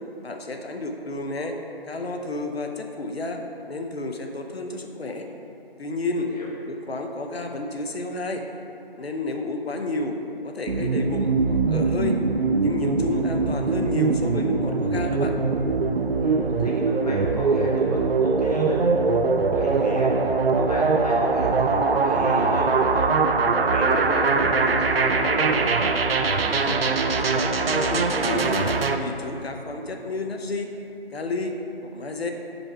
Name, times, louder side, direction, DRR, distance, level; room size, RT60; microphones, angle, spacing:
voice 1, 0.2-1.6 1.8-3.4 3.7-5.3 5.8-6.3 6.7-8.4 9.0-10.2 10.4-12.2 12.6-15.3 26.5-26.8 27.2-30.7 31.1-32.3, left 2 dB, 85° left, 4 dB, 0.8 m, -31 dB
voice 2, 6.2-6.5 16.2-18.8 19.5-23.1 23.6-25.9, left 1 dB, 40° left, -5 dB, 1.2 m, -32 dB
sound 1, 10.7-29.0, right 4 dB, 70° right, 0.5 m, -22 dB
5.3 x 4.4 x 4.6 m, 2.8 s
figure-of-eight pair, 180°, 30 cm